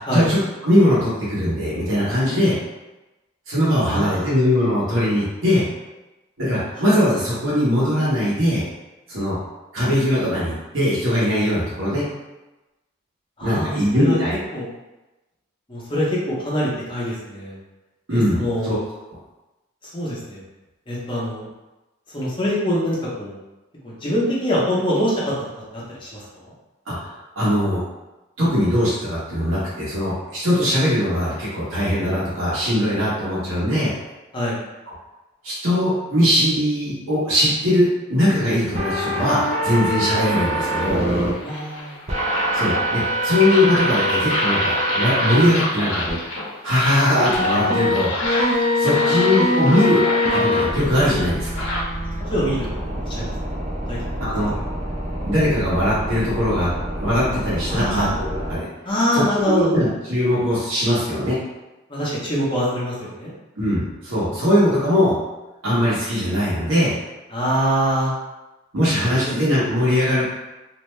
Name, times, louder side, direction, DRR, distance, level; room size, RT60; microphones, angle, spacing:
voice 1, 0.0-2.6 3.5-5.6 6.4-8.6 9.1-9.4 9.7-12.0 13.4-14.4 18.1-18.8 26.9-27.8 28.4-33.9 35.4-41.0 42.5-46.0 46.6-48.1 48.8-50.0 50.3-51.6 54.2-54.5 55.2-58.7 59.1-61.4 63.6-65.2 65.6-66.9 68.7-70.2, left 1 dB, 90° right, -9 dB, 1.1 m, -20 dB
voice 2, 3.9-4.3 6.8-6.9 13.4-14.2 14.5-14.7 15.7-17.5 18.1-18.7 19.9-20.4 20.9-21.5 22.1-23.4 23.8-25.3 25.7-26.5 34.3-34.6 41.4-42.0 52.3-53.3 53.9-54.0 54.4-54.6 57.7-58.1 58.8-59.8 61.9-63.3 67.3-68.1 69.1-69.3, equal, 25° left, -6 dB, 0.7 m, -24 dB
sound 1, 38.7-41.3 42.1-45.5 46.1-46.2 47.3-58.5, equal, 30° right, 0.4 m, -24 dB
sound 2, 39.7-51.8, left 1 dB, 85° left, 0.6 m, -28 dB
2.6 x 2.1 x 3.1 m, 1.0 s
head